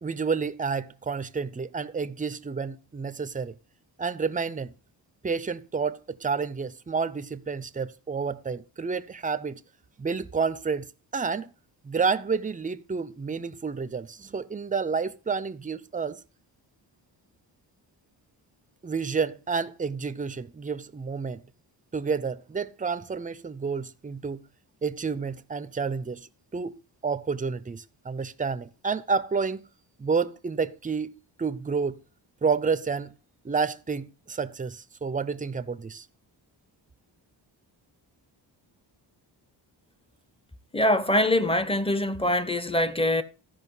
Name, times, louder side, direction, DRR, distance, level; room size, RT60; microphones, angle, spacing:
voice 1, 0.0-3.6 4.0-4.7 5.2-9.6 10.0-11.5 11.8-16.2 18.8-21.4 21.9-24.4 24.8-26.7 27.0-29.7 30.0-31.1 31.4-32.0 32.4-33.1 33.4-36.1, right 5 dB, 20° right, 0.6 m, -30 dB
voice 2, 40.7-43.2, left 1 dB, 10° left, 0.8 m, -23 dB
13.0 x 5.2 x 5.5 m
cardioid pair, 80°, 44 cm